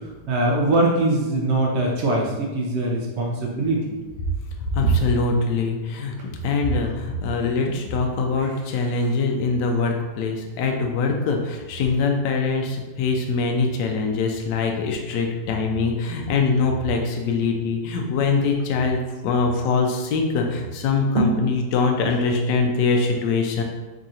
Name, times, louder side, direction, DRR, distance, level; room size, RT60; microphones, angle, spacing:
voice 1, 0.3-3.9 7.7-7.8 21.1-21.4, right 2 dB, 80° right, -1 dB, 0.6 m, -22 dB
voice 2, 4.6-6.2 6.4-23.6, left 3 dB, 80° left, 2 dB, 1.2 m, -23 dB
3.7 x 2.5 x 4.2 m, 1.2 s
omnidirectional pair, 1.8 m